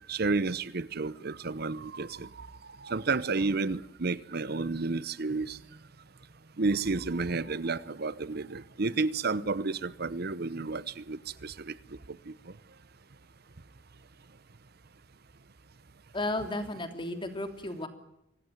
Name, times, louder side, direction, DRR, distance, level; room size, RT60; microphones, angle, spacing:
voice 1, 0.1-2.5 2.8-5.6 6.6-11.8 12.3-12.4, right 3 dB, 55° right, 0.9 m, -31 dB
voice 2, 16.1-17.9, left 2 dB, 25° left, 3.1 m, -33 dB
25.0 x 17.5 x 9.4 m
head